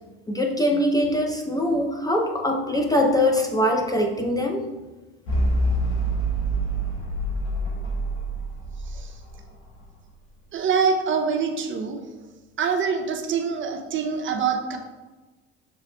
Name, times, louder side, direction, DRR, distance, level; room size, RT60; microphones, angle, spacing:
voice 1, 0.3-4.6, left 1 dB, 10° left, 2 dB, 0.5 m, -22 dB
sound 1, 5.3-9.8, right 1 dB, 90° left, 1.3 m, -26 dB
voice 2, 10.5-12.0 12.6-14.8, right 6 dB, 40° right, 4 dB, 0.7 m, -25 dB
6.7 x 3.4 x 2.3 m, 1.2 s
hypercardioid pair, 75°, 31 cm